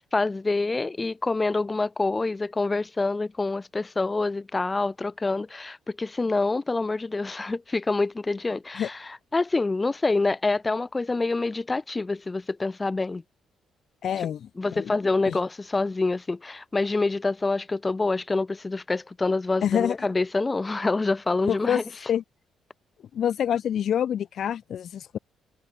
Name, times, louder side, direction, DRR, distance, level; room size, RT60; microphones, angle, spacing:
voice 1, 0.1-13.2 14.2-14.3 14.6-21.8, left 3 dB, 20° left, 4.5 m, -26 dB
voice 2, 14.0-14.5 14.8-14.9 15.2-15.4 19.6-20.0 21.5-22.2 23.1-25.2, left 9 dB, 65° left, 2.0 m, -26 dB
cardioid pair, 90°, 0 cm